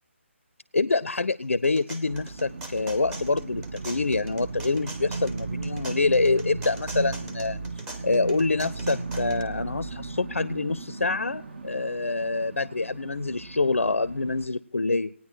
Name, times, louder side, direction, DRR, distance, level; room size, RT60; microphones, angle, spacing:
voice 1, 0.7-7.6 8.0-15.1, left 3 dB, 80° left, 17 dB, 0.4 m, -26 dB
sound 1, 1.4-9.4, right 1 dB, 10° right, 0.9 m, -42 dB
sound 2, 1.7-11.9, left 1 dB, 85° right, 2.1 m, -52 dB
sound 3, 2.0-14.5, right 4 dB, 50° right, 0.6 m, -36 dB
18.0 x 9.4 x 4.4 m, 0.67 s
figure-of-eight pair, 150°, 7 cm